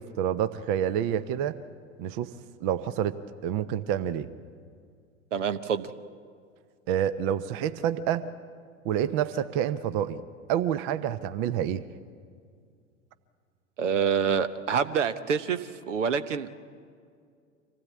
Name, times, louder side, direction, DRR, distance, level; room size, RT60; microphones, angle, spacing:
voice 1, 0.0-1.6 2.0-2.3 2.6-4.3 6.9-8.3 8.8-10.2 10.5-11.8, right 10 dB, 45° right, 13 dB, 0.8 m, -28 dB
voice 2, 5.3-5.9 13.8-16.6, right 7 dB, 70° right, 12 dB, 1.0 m, -27 dB
25.5 x 16.5 x 8.5 m, 2.2 s
figure-of-eight pair, 85°, 37 cm